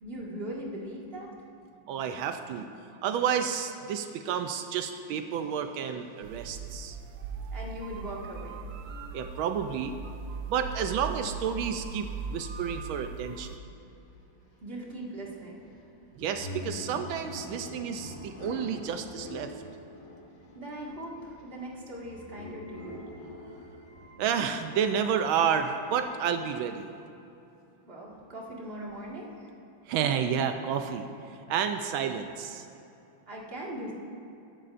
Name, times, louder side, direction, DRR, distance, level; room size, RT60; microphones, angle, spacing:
voice 1, 0.0-1.4 7.5-8.6 12.6-12.7 14.6-15.7 20.5-23.1 27.8-29.5 31.7-31.9 33.3-33.9, right 1 dB, 30° right, -4 dB, 2.0 m, -40 dB
voice 2, 1.9-2.7 3.0-7.0 9.1-10.0 10.5-13.6 16.2-19.5 24.2-26.9 29.9-31.1 31.5-32.7, right 7 dB, 85° right, 7 dB, 1.4 m, -30 dB
sound 1, 6.2-13.6, right 4 dB, 70° right, 0.9 m, -39 dB
sound 2, 13.6-26.4, left 1 dB, 45° left, 1.7 m, -45 dB
22.0 x 11.0 x 2.6 m, 2.7 s
omnidirectional pair, 2.2 m